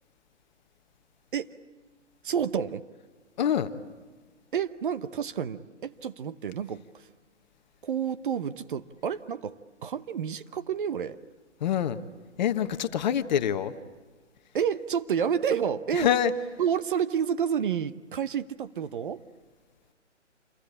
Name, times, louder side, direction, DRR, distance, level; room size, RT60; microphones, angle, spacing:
voice 1, 2.2-2.8 4.5-7.0 7.8-11.2 14.5-16.1 16.6-19.2, right 8 dB, 45° right, 12 dB, 1.0 m, -29 dB
voice 2, 3.4-3.7 11.6-12.0 12.4-13.7 15.9-16.3, left 9 dB, 35° left, 10 dB, 1.3 m, -25 dB
28.0 x 23.0 x 8.6 m, 1.4 s
figure-of-eight pair, 145°, 36 cm